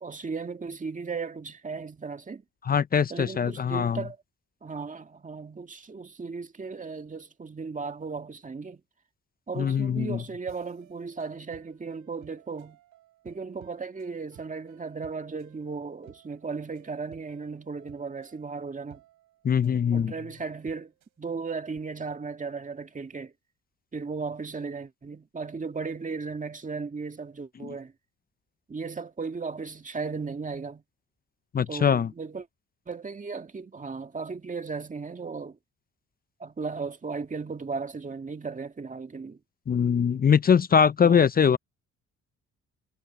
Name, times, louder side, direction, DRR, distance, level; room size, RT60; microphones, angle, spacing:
voice 1, 0.0-2.4 3.1-4.2 4.6-8.8 9.5-12.8 13.2-19.0 19.9-20.9 21.2-23.3 23.9-27.9 28.7-30.8 31.7-32.5 32.9-35.6 36.4-39.4 41.0-41.2, right 4 dB, 25° right, 2.0 m, -36 dB
voice 2, 2.7-4.0 9.6-10.2 19.4-20.1 31.5-32.1 39.7-41.6, left 7 dB, 30° left, 0.5 m, -22 dB
sound 1, 10.5-21.2, right 13 dB, 85° right, 4.4 m, -57 dB
cardioid pair, 90°, 30 cm